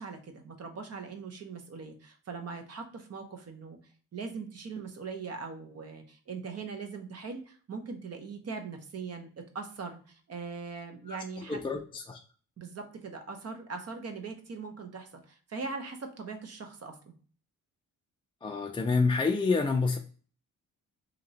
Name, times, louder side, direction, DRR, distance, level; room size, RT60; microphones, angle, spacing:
voice 1, 0.0-3.8 4.1-11.6 12.6-17.1, right 4 dB, 50° right, 0.9 m, -41 dB
voice 2, 11.5-12.2 18.4-20.0, left 4 dB, 15° left, 0.3 m, -28 dB
2.9 x 2.9 x 3.9 m
cardioid pair, 110°, 33 cm